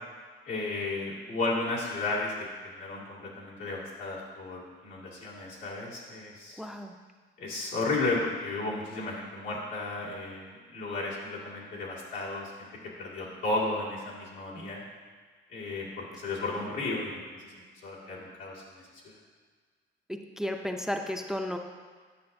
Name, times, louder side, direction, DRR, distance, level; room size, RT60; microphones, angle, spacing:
voice 1, 0.5-6.6 7.4-12.7 13.0-14.8 15.5-17.5 17.8-18.9, left 2 dB, 90° left, -5 dB, 1.9 m, -34 dB
voice 2, 6.6-6.9 14.5-14.7 20.1-21.6, left 1 dB, ahead, 4 dB, 0.5 m, -34 dB
9.5 x 6.5 x 2.6 m, 1.5 s
cardioid pair, 90°, 20 cm